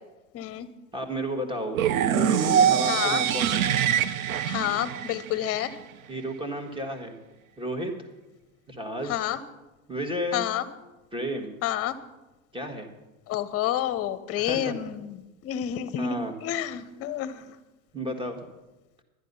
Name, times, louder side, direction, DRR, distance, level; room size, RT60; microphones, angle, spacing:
voice 1, 0.3-0.7 2.8-3.2 4.4-5.8 9.0-9.4 10.3-10.7 11.6-11.9 13.3-17.6, left 11 dB, 35° left, 13 dB, 0.9 m, -29 dB
voice 2, 0.9-3.6 6.1-7.2 7.6-8.0 8.7-9.3 9.9-10.5 11.1-11.6 12.5-12.9 14.4-14.7 16.0-16.3 17.9-18.4, right 1 dB, 10° right, 5 dB, 1.7 m, -32 dB
sound 1, 1.7-5.7, right 9 dB, 75° right, 0.8 m, -24 dB
11.0 x 10.5 x 5.5 m, 1.1 s
hypercardioid pair, 110°, 42 cm